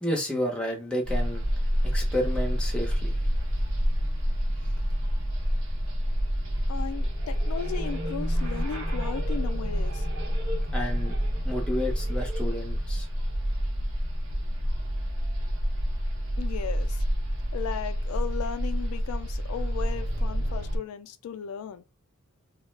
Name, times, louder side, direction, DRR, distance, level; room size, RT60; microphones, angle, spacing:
voice 1, 0.0-1.4 1.9-3.1 10.7-11.2 11.4-13.1, left 1 dB, 5° left, 0.6 m, -30 dB
sound 1, 1.0-20.8, equal, 65° right, 0.8 m, -28 dB
voice 2, 6.7-10.1 16.4-17.0 17.5-21.8, left 8 dB, 80° left, 0.3 m, -36 dB
2.3 x 2.0 x 3.1 m
head